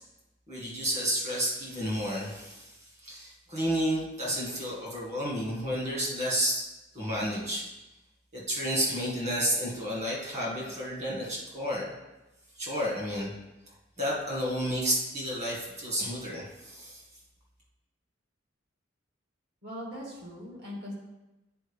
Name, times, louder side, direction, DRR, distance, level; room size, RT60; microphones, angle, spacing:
voice 1, 0.5-2.7 3.0-6.6 6.9-7.6 8.3-11.9 12.6-13.3 14.0-17.0, equal, 35° right, -4 dB, 1.9 m, -31 dB
voice 2, 19.6-20.9, equal, 60° right, -4 dB, 2.2 m, -40 dB
9.2 x 4.4 x 3.6 m, 1.0 s
head